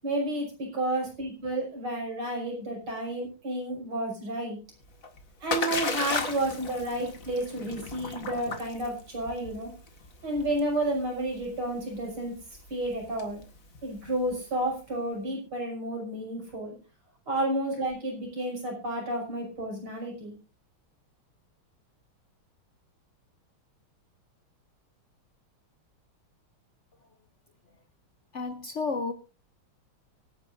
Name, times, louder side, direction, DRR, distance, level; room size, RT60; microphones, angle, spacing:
voice 1, 0.0-4.6 5.4-9.7 10.2-12.3 12.7-13.4 13.8-16.8 17.3-20.4, right 1 dB, 85° right, 6.9 m, -31 dB
Splash splatter, 4.8-14.7, left 4 dB, 40° left, 2.0 m, -36 dB
voice 2, 28.3-29.1, left 4 dB, 55° left, 0.8 m, -31 dB
24.0 x 10.0 x 2.6 m
omnidirectional pair, 2.3 m